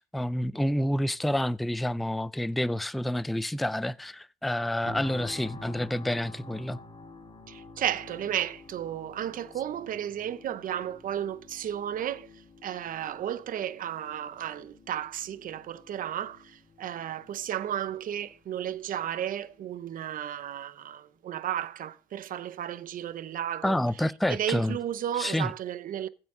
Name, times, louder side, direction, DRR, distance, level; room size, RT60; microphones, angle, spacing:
voice 1, 0.0-6.8 23.6-24.8 25.1-25.5, left 1 dB, ahead, 0.4 m, -28 dB
sound 1, 4.8-19.9 20.3-20.5, left 3 dB, 30° left, 3.7 m, -49 dB
voice 2, 7.5-12.3 12.6-23.8 24.3-26.1, right 10 dB, 55° right, 0.8 m, -33 dB
15.0 x 5.9 x 3.8 m
cardioid pair, 110°, 17 cm